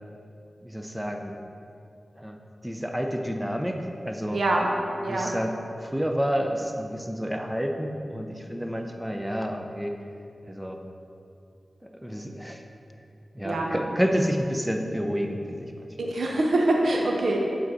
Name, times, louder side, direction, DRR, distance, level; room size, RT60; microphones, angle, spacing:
voice 1, 0.6-1.3 2.2-2.4 2.6-4.4 5.1-10.0 10.4-10.8 11.8-12.6 13.3-15.9, equal, 5° right, 3 dB, 0.6 m, -29 dB
voice 2, 4.3-4.7 5.0-5.3 13.4-13.8 16.0-17.4, right 2 dB, 85° right, 0 dB, 0.7 m, -24 dB
7.5 x 4.0 x 4.8 m, 2.6 s
wide cardioid pair, 85°, 0 cm